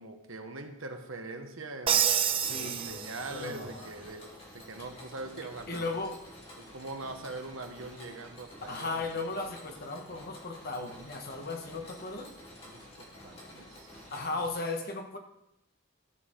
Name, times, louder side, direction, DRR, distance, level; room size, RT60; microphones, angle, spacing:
voice 1, 0.0-4.2 4.5-5.9 6.6-9.3 12.6-14.0, right 2 dB, 65° right, 5 dB, 1.3 m, -43 dB
Crash cymbal, 1.9-3.6, right 9 dB, 25° right, 0.3 m, -28 dB
voice 2, 2.3-3.9 5.7-6.2 8.7-12.3 14.1-15.2, left 3 dB, 45° left, 4 dB, 1.4 m, -36 dB
Mechanisms, 2.3-14.5, left 1 dB, 30° left, 2.9 m, -50 dB
14.0 x 8.7 x 3.8 m, 0.82 s
head